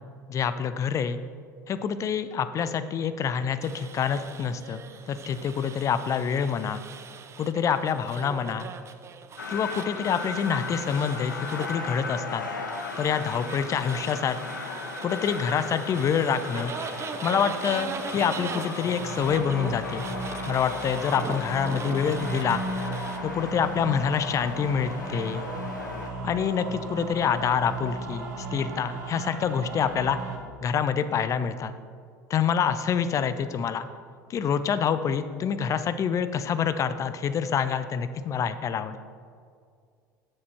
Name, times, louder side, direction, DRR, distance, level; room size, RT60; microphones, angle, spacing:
voice 1, 0.3-1.2 1.7-6.8 7.4-8.7 9.5-12.4 13.0-14.4 15.0-16.7 17.2-20.1 20.5-22.6 23.2-25.5 26.2-30.2 30.6-31.7 32.3-33.9 34.3-39.0, left 7 dB, 30° left, 12 dB, 0.5 m, -26 dB
sound 1, 3.6-23.2, right 6 dB, 30° right, 0.5 m, -40 dB
sound 2, 9.4-26.1, left 4 dB, 80° left, 0.8 m, -37 dB
sound 3, 18.8-30.4, right 2 dB, 70° right, 1.2 m, -36 dB
7.6 x 6.8 x 4.4 m, 2.2 s
figure-of-eight pair, 70°, 10 cm